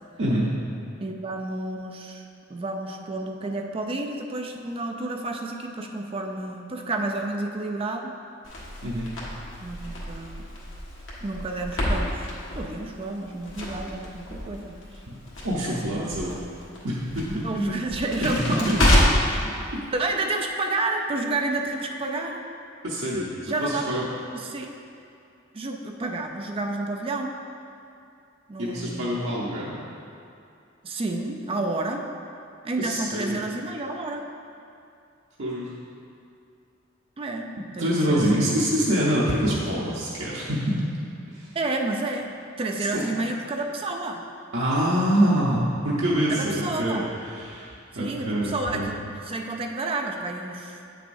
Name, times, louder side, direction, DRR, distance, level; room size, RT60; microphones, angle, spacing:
voice 1, 1.0-8.1 9.6-10.5 11.2-14.8 15.7-16.4 17.3-19.0 19.3-19.6 19.9-22.4 23.5-23.9 24.3-24.7 25.5-27.3 28.5-29.2 30.8-32.1 32.6-34.3 37.2-38.6 41.5-42.3 42.6-44.2 46.3-47.1 47.9-50.8, right 2 dB, 30° right, 3 dB, 0.4 m, -30 dB
Crackle, 8.4-19.4, left 1 dB, 85° left, 1.6 m, -28 dB
voice 2, 15.4-16.3 16.8-17.9 18.2-19.0 19.7-19.8 22.8-24.0 28.6-29.8 32.8-33.4 35.4-35.7 37.8-40.8 41.3-41.6 42.9-43.0 44.5-48.9, equal, 85° right, -7 dB, 0.9 m, -25 dB
8.4 x 6.4 x 2.6 m, 2.5 s
head